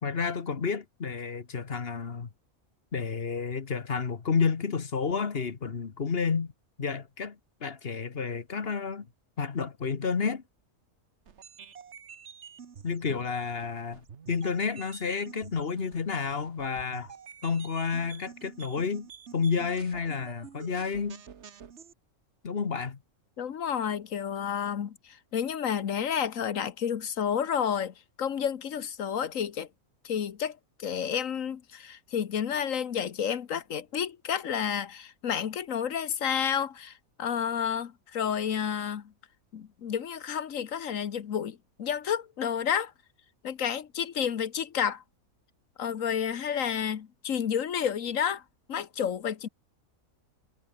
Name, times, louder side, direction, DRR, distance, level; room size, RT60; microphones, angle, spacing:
voice 1, 0.0-2.3 2.9-6.5 6.8-9.1 9.4-10.4 12.8-17.1 17.4-19.1 19.3-21.2 22.4-23.0, left 5 dB, 45° left, 1.5 m, -30 dB
sound 1, 11.3-21.9, right 7 dB, 55° right, 1.4 m, -49 dB
voice 2, 23.4-29.7 30.0-39.1 39.5-42.9 43.4-45.0 45.8-48.4 48.7-49.5, left 8 dB, 70° left, 1.4 m, -30 dB
omnidirectional pair, 1.5 m